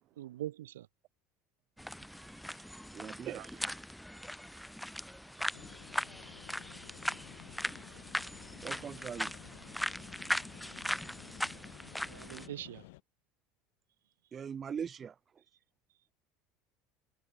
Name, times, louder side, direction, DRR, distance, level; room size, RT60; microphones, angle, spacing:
voice 1, 0.2-0.9 12.0-12.8, right 13 dB, 80° right, 0.5 m, -42 dB
sound 1, 1.8-12.5, equal, 5° left, 1.5 m, -39 dB
voice 2, 1.8-3.7 4.8-5.6 7.1-7.2 7.8-8.3, right 16 dB, 55° right, 1.0 m, -52 dB
voice 3, 2.9-3.4 8.6-9.4 14.3-15.4, right 7 dB, 35° right, 1.1 m, -41 dB
sound 2, 5.5-13.0, left 23 dB, 70° left, 3.6 m, -54 dB
hypercardioid pair, 70°, 0 cm